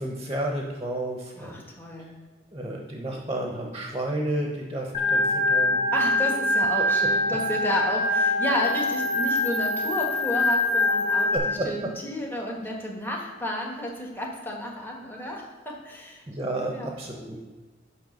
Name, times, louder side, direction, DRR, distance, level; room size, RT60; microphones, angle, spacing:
voice 1, 0.0-1.6 2.5-5.8 7.7-7.8 11.3-11.7 16.3-17.4, right 1 dB, 20° right, 0 dB, 0.9 m, -31 dB
voice 2, 1.4-2.1 5.9-16.2 16.7-16.9, equal, 10° left, -1 dB, 1.4 m, -32 dB
Organ, 4.9-11.4, left 1 dB, 30° left, 2.2 m, -24 dB
10.0 x 3.4 x 6.6 m, 1.3 s
head